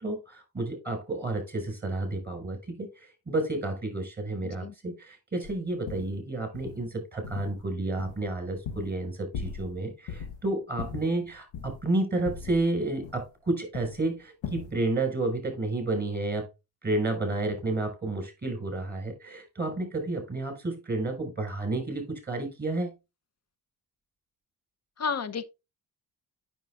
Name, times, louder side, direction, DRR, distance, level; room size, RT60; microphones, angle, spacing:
voice 1, 0.0-16.4 16.8-22.9, right 2 dB, 20° right, 5.4 m, -31 dB
voice 2, 4.4-4.7 25.0-25.4, left 5 dB, 35° left, 0.8 m, -31 dB
sound 1, 5.4-5.6 5.9-6.2 6.5-6.8 7.2-7.7 8.0-9.0 9.3-9.8 10.1-10.4 10.8-11.9 12.3-13.5 13.7-14.0 14.4-14.8, left 6 dB, 85° left, 1.1 m, -39 dB
9.2 x 6.9 x 2.4 m
cardioid pair, 60°, 45 cm